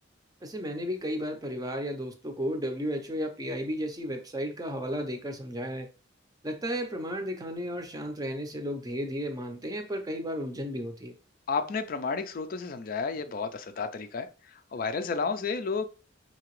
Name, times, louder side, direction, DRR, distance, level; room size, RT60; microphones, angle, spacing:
voice 1, 0.4-5.9 6.4-11.1, equal, 20° right, 6 dB, 0.5 m, -33 dB
voice 2, 11.5-15.8, left 4 dB, 45° left, 9 dB, 0.4 m, -32 dB
5.8 x 2.8 x 3.0 m, 0.34 s
head